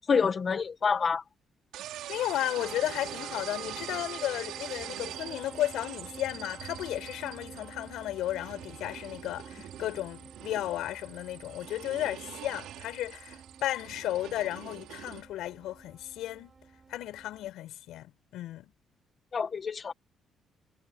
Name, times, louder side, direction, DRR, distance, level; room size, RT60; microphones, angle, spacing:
voice 1, 0.1-1.2 19.3-19.9, left 5 dB, 45° left, 1.6 m, -27 dB
sound 1, 1.7-15.2, right 13 dB, 85° right, 4.6 m, -44 dB
voice 2, 2.1-16.5 16.9-18.7, left 14 dB, 85° left, 7.5 m, -34 dB
sound 2, 2.6-17.5, right 5 dB, 35° right, 7.2 m, -50 dB
cardioid pair, 90°, 0 cm